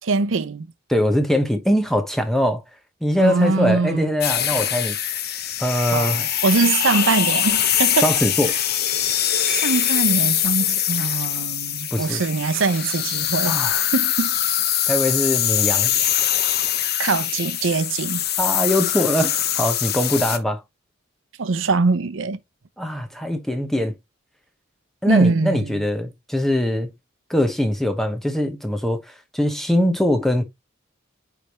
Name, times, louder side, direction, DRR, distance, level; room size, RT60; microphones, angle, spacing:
voice 1, 0.0-0.7 3.2-4.1 5.9-8.1 8.5-8.6 9.4-13.6 13.9-14.3 17.0-18.2 21.4-22.4 25.1-25.8, right 4 dB, 70° right, 0.6 m, -22 dB
voice 2, 0.9-2.6 3.0-5.0 5.6-6.3 8.0-8.6 11.9-12.2 13.5-13.8 14.9-15.9 18.4-20.6 22.8-23.9 25.0-26.9 27.3-30.4, left 1 dB, ahead, 1.0 m, -22 dB
sound 1, 4.2-20.4, left 10 dB, 50° left, 0.9 m, -23 dB
9.9 x 3.4 x 3.1 m
head